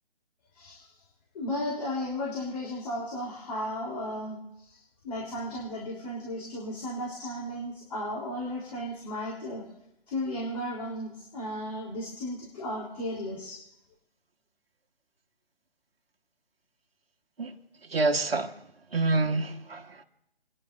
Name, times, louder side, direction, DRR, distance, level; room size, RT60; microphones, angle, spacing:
voice 1, 0.5-0.9 1.3-9.6 10.1-13.6, left 1 dB, 40° left, 3.7 m, -35 dB
voice 2, 17.9-18.5 18.9-20.0, right 3 dB, 70° right, 1.5 m, -27 dB
30.0 x 10.5 x 2.6 m
figure-of-eight pair, 155°, 31 cm